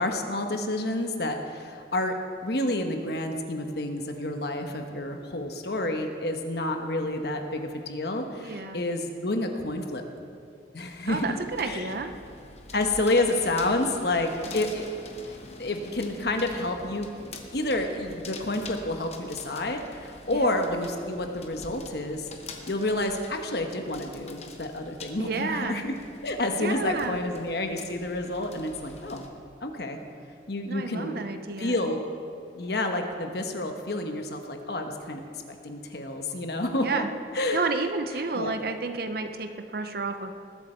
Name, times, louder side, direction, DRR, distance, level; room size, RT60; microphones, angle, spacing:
voice 1, 0.0-2.2 2.4-10.0 10.7-11.3 11.6-11.8 12.7-15.0 15.2-17.1 17.5-22.3 22.7-26.0 26.2-29.2 29.6-30.0 30.5-31.2 31.6-32.0 32.5-35.2 35.5-37.0 37.3-37.6 38.3-38.5, left 2 dB, 60° left, 4 dB, 1.1 m, -29 dB
voice 2, 8.4-8.8 11.1-12.1 20.3-20.5 25.2-25.8 26.6-27.2 30.7-31.9 36.8-37.1 37.5-40.3, right 3 dB, 55° right, 7 dB, 0.6 m, -31 dB
sound 1, 11.1-29.3, left 3 dB, 35° left, 1.0 m, -46 dB
20.0 x 8.2 x 4.5 m, 2.4 s
head